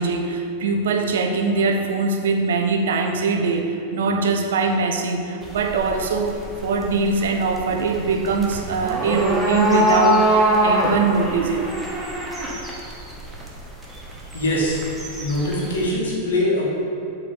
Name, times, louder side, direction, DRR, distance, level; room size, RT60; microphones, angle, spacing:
voice 1, 0.0-11.7, right 4 dB, 60° right, 4 dB, 0.7 m, -22 dB
sound 1, 5.4-15.9, equal, 10° right, 1.3 m, -24 dB
voice 2, 14.3-14.8 15.2-16.6, left 1 dB, 65° left, -4 dB, 2.1 m, -22 dB
7.6 x 4.4 x 6.8 m, 2.6 s
figure-of-eight pair, 90°, 0 cm